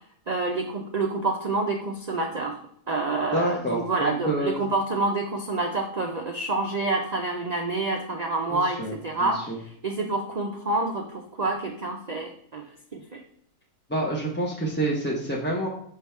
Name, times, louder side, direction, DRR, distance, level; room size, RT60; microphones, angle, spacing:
voice 1, 0.3-2.6 2.9-9.5 9.8-12.6 12.9-13.2, right 2 dB, 60° right, 1 dB, 0.4 m, -28 dB
voice 2, 3.3-4.6 8.5-9.6 13.9-15.7, right 1 dB, 10° left, -4 dB, 0.6 m, -28 dB
6.6 x 3.5 x 4.3 m, 0.66 s
omnidirectional pair, 1.6 m